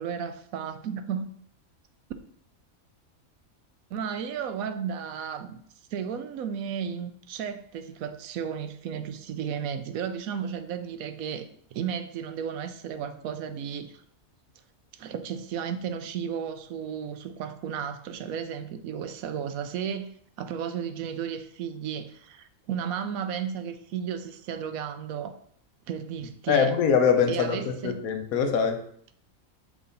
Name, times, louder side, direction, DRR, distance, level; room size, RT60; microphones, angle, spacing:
voice 1, 0.0-1.3 3.9-5.6 5.9-14.0 14.9-25.4 25.9-26.8 27.3-28.0, right 8 dB, 85° right, 1.1 m, -34 dB
voice 2, 26.5-28.8, left 6 dB, 85° left, 1.2 m, -23 dB
5.9 x 4.0 x 4.0 m
omnidirectional pair, 1.5 m